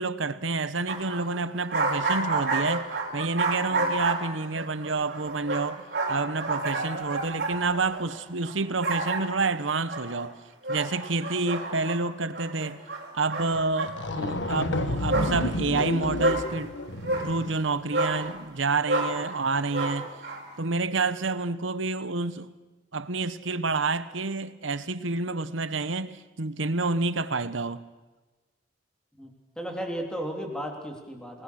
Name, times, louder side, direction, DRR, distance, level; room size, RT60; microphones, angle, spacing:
voice 1, 0.0-10.4 10.7-12.8 13.1-16.7 17.2-20.1 20.6-22.5 22.9-27.8, right 3 dB, 80° right, 13 dB, 1.2 m, -29 dB
sound 1, 0.9-8.5 8.8-9.6 9.9-10.2 10.6-12.0 12.3-14.2 14.6-14.7 14.9-15.6 16.2-16.5 17.0-17.3 17.9-18.4 18.9-19.4 19.7-20.5, right 2 dB, 55° right, 4.5 m, -30 dB
sound 2, 13.5-13.6 13.9-17.6, left 1 dB, 65° left, 1.5 m, -30 dB
voice 2, 29.6-31.4, equal, 5° left, 2 dB, 3.5 m, -35 dB
29.0 x 19.5 x 6.5 m, 1.2 s
head